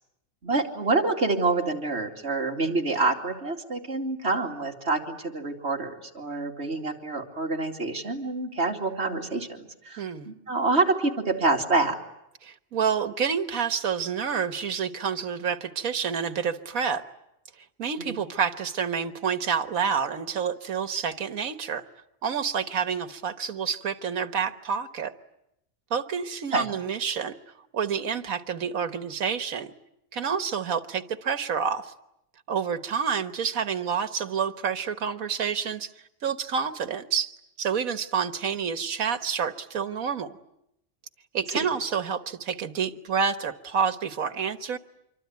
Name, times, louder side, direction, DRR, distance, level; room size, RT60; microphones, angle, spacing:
voice 1, 0.4-12.0 18.0-18.2 26.5-26.7 41.5-41.7, right 3 dB, 50° right, 1 dB, 2.9 m, -27 dB
voice 2, 10.0-10.3 12.4-17.0 17.8-21.8 22.2-25.1 25.9-27.3 27.7-29.7 30.1-31.9 32.5-35.9 36.2-40.4 41.3-44.8, right 6 dB, 90° right, 10 dB, 1.7 m, -28 dB
26.5 x 24.0 x 9.4 m, 0.83 s
omnidirectional pair, 1.4 m